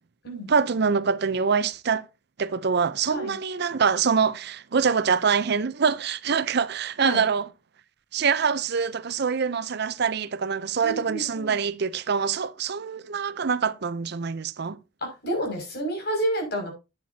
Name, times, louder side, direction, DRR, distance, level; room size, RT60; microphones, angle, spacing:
voice 1, 0.5-2.1 2.4-7.5 8.1-14.8, right 6 dB, 60° right, 0.6 m, -25 dB
voice 2, 10.8-11.6 15.0-16.7, right 1 dB, 60° left, 5.9 m, -29 dB
10.5 x 8.9 x 2.7 m
head